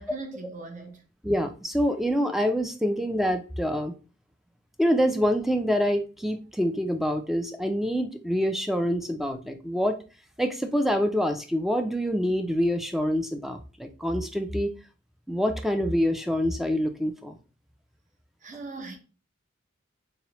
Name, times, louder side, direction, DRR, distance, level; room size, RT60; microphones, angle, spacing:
voice 1, 0.0-1.0 18.4-19.0, right 3 dB, 40° right, 0.7 m, -40 dB
voice 2, 1.2-3.9 4.8-10.0 10.4-14.7 15.3-17.4, equal, ahead, 0.3 m, -26 dB
3.7 x 3.1 x 2.9 m
head